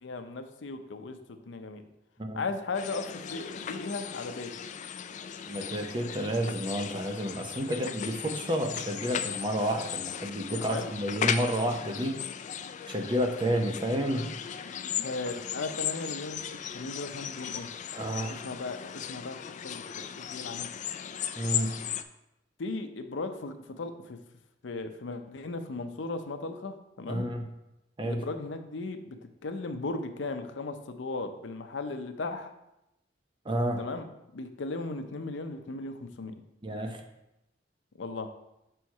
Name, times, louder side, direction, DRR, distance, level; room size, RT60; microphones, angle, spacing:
voice 1, 0.0-1.8 2.3-4.5 10.5-10.9 15.0-17.7 18.3-19.4 19.6-19.8 20.2-20.7 22.6-24.2 24.6-27.3 28.0-32.5 33.8-36.4 38.0-38.3, left 3 dB, 80° left, 8 dB, 0.6 m, -37 dB
sound 1, 2.7-22.0, left 9 dB, 40° left, 0.3 m, -37 dB
voice 2, 5.5-12.2 12.9-14.3 17.9-18.4 21.4-21.7 27.1-27.4 28.0-28.2 33.5-33.8 36.6-37.0, equal, 25° right, 4 dB, 0.7 m, -30 dB
6.3 x 4.5 x 4.6 m, 0.88 s
head